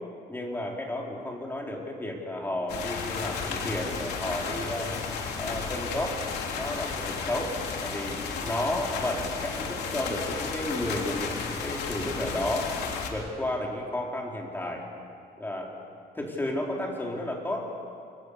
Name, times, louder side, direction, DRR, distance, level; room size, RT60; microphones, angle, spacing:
voice 1, 0.3-5.0 5.3-6.2 6.5-12.7 13.1-14.8 15.4-15.7 16.1-17.7, left 1 dB, 10° left, -1 dB, 4.7 m, -32 dB
sound 1, 2.7-13.1, left 5 dB, 85° left, 3.5 m, -33 dB
29.0 x 23.5 x 7.0 m, 2.3 s
cardioid pair, 130°, 17 cm